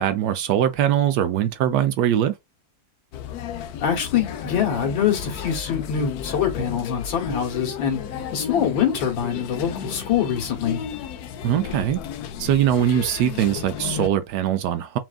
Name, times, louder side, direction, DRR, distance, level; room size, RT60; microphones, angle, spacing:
voice 1, 0.0-2.3 11.4-12.0 12.4-15.0, right 10 dB, 75° right, 1.0 m, -21 dB
sound 1, 3.1-14.1, left 8 dB, 70° left, 0.9 m, -34 dB
voice 2, 3.8-8.0 8.3-10.8, left 8 dB, 85° left, 2.0 m, -24 dB
5.9 x 2.5 x 2.4 m
omnidirectional pair, 2.0 m